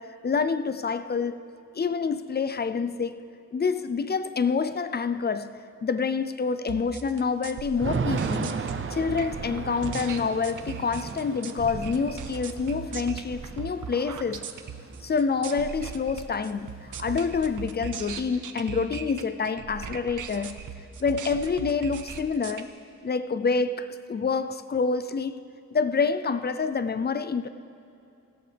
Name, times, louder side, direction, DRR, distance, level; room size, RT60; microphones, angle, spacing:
voice 1, 0.0-1.4 1.7-3.2 3.5-8.6 8.9-14.5 15.0-20.6 21.0-22.7 23.0-25.4 25.7-27.5, left 5 dB, 35° left, 0.4 m, -27 dB
sound 1, 6.7-22.6, right 7 dB, 85° right, 0.8 m, -39 dB
Thunder / Rain, 7.8-15.6 15.9-16.0 16.3-17.6, right 5 dB, 40° right, 0.6 m, -35 dB
17.5 x 16.0 x 3.4 m
wide cardioid pair, 160°, 30 cm